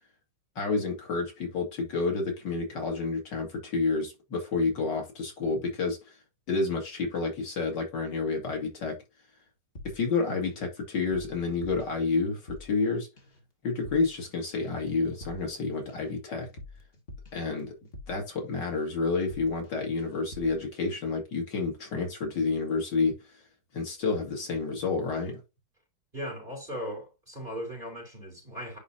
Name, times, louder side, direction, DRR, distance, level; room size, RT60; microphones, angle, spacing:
voice 1, 0.6-6.1 6.5-9.0 9.9-13.1 13.6-16.5 17.3-17.7 18.1-23.4 23.7-25.4, left 4 dB, 80° left, 2.8 m, -29 dB
sound 1, 9.8-10.7 10.9-12.9 13.2-13.5 13.8-14.3 14.5-18.3 18.6-18.9 19.2-19.7 20.0-20.6, left 2 dB, 30° left, 2.0 m, -48 dB
voice 2, 26.1-28.8, equal, 25° right, 3.7 m, -38 dB
10.5 x 4.1 x 2.7 m
omnidirectional pair, 1.9 m